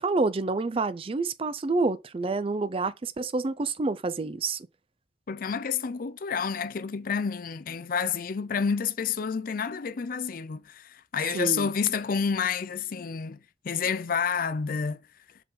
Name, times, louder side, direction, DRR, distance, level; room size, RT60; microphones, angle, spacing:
voice 1, 0.0-4.7 11.3-11.7, right 3 dB, 30° right, 0.4 m, -28 dB
voice 2, 5.3-13.4 13.6-15.0, left 6 dB, 50° left, 0.5 m, -29 dB
5.7 x 3.9 x 5.7 m
head